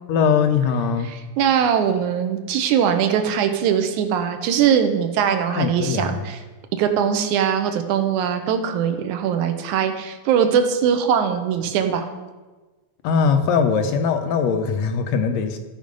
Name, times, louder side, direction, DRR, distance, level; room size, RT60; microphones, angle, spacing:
voice 1, 0.1-1.1 5.5-6.2 13.0-15.6, left 6 dB, 75° left, 6 dB, 1.8 m, -21 dB
voice 2, 1.1-6.4 6.7-12.1, right 8 dB, 80° right, 7 dB, 2.2 m, -21 dB
14.5 x 5.0 x 5.2 m, 1.2 s
omnidirectional pair, 3.5 m